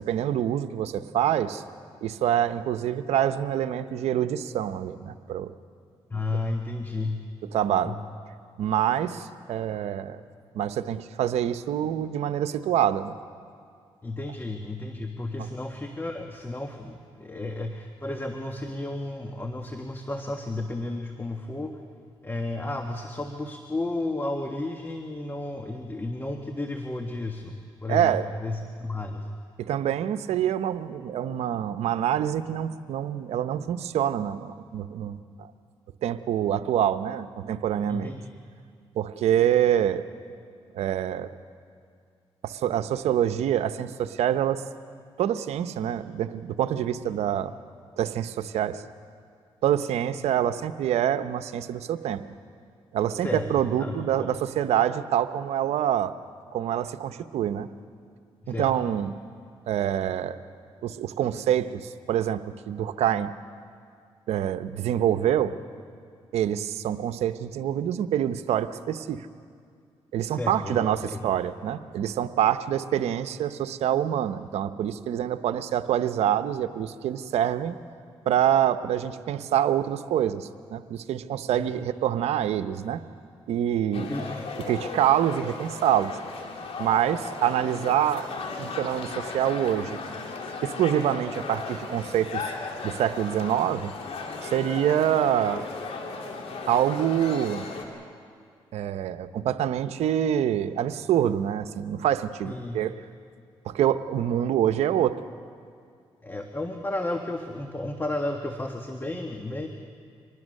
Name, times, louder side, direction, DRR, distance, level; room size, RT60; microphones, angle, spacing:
voice 1, 0.0-1.6 2.0-5.5 7.5-8.0 8.6-10.2 10.5-13.1 27.9-28.2 29.6-35.5 36.0-38.1 39.0-40.0 40.7-41.3 42.4-44.6 45.2-47.5 48.0-48.8 49.6-52.2 52.9-56.1 56.5-57.7 58.5-59.1 59.7-60.4 60.8-62.4 62.7-63.3 64.3-65.5 66.3-69.3 70.1-77.8 78.2-83.0 83.5-84.1 84.7-86.2 86.8-88.3 88.6-90.0 90.6-92.4 92.8-93.9 94.4-95.6 96.7-97.7 98.7-102.9 103.7-105.1, right 10 dB, 85° right, 11 dB, 0.8 m, -26 dB
voice 2, 6.1-7.3 7.8-8.0 14.0-21.8 22.2-29.3 37.9-38.3 47.1-47.2 53.2-53.5 53.8-54.3 58.4-58.7 70.2-71.2 81.5-81.8 83.9-84.4 102.4-102.8 106.2-109.7, left 2 dB, 20° left, 4 dB, 1.5 m, -33 dB
sound 1, 83.9-97.9, left 4 dB, 70° left, 2.9 m, -36 dB
24.5 x 19.5 x 6.5 m, 2.2 s
cardioid pair, 65°, 11 cm